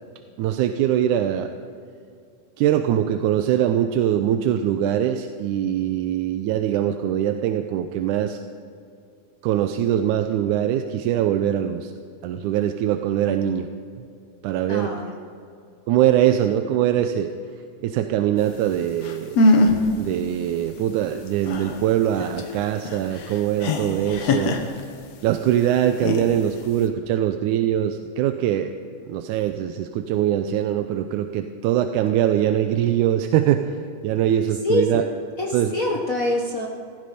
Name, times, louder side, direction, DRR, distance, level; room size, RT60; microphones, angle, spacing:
voice 1, 0.4-1.5 2.6-8.4 9.4-11.9 12.2-13.7 14.4-14.9 15.9-17.3 17.8-19.4 20.0-24.6 25.2-28.8 29.0-33.7 34.0-35.0 35.5-35.7, right 11 dB, 80° right, 7 dB, 2.1 m, -22 dB
voice 2, 14.7-15.1 34.6-35.0 35.4-36.7, left 2 dB, 80° left, -1 dB, 0.7 m, -25 dB
sound 1, 18.7-18.8 19.0-19.9 20.2-20.3 20.7-25.3 25.8-26.9, left 2 dB, 60° left, 2.3 m, -22 dB
17.0 x 14.0 x 5.3 m, 2.4 s
omnidirectional pair, 3.6 m